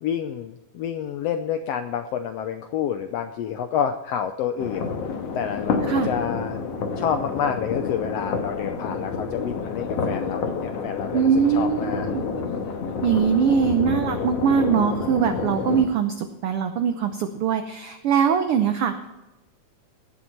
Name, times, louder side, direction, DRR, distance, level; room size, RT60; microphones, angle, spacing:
voice 1, 0.0-4.9 5.3-5.8 6.1-6.6 7.0-12.1, left 8 dB, 80° left, 8 dB, 1.4 m, -28 dB
sound 1, 4.6-15.9, left 5 dB, 60° left, 2.2 m, -29 dB
voice 2, 11.1-12.3 13.0-19.1, right 7 dB, 80° right, 8 dB, 1.2 m, -22 dB
17.0 x 7.3 x 4.4 m, 1.0 s
omnidirectional pair, 3.5 m